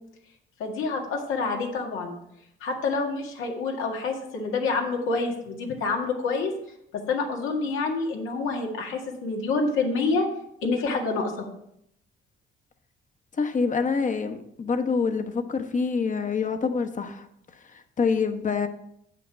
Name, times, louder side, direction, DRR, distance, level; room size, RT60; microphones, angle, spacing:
voice 1, 0.6-2.2 2.6-6.5 6.9-10.3 10.6-11.5, left 4 dB, 90° left, 1 dB, 1.9 m, -27 dB
voice 2, 13.4-17.3 18.0-18.7, left 5 dB, 40° left, 7 dB, 1.1 m, -26 dB
8.6 x 5.8 x 6.1 m, 0.74 s
cardioid pair, 90°, 20 cm